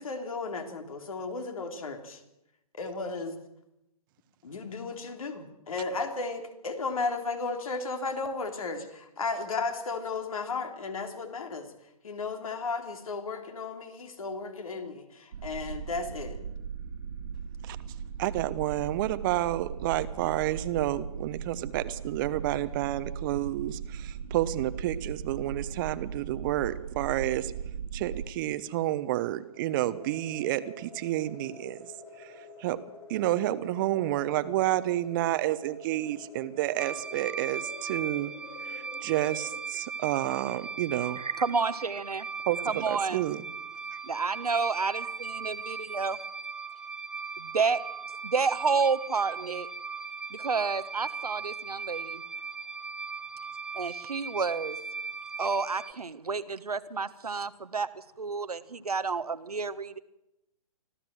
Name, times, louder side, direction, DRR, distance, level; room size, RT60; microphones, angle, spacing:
voice 1, 0.0-2.2 2.7-3.4 4.4-11.7 12.0-16.4, left 4 dB, 65° left, 6 dB, 3.6 m, -34 dB
sound 1, 15.3-28.3, right 6 dB, 60° right, 1.8 m, -38 dB
voice 2, 18.2-27.5 27.9-31.9 32.2-32.8 33.1-38.3 38.6-41.2 42.5-43.4 43.9-44.0, right 14 dB, 35° right, 14 dB, 1.0 m, -30 dB
sound 2, 29.5-39.6, left 4 dB, 35° left, 7.1 m, -49 dB
sound 3, 36.8-55.9, right 5 dB, 5° right, 1.7 m, -38 dB
voice 3, 41.2-42.3 42.6-43.3 44.0-46.2 47.4-47.8 48.2-49.7 50.3-52.2 53.7-54.8 55.4-60.0, right 4 dB, 80° right, 12 dB, 1.3 m, -30 dB
25.0 x 15.0 x 7.8 m, 0.87 s
figure-of-eight pair, 130°, 19 cm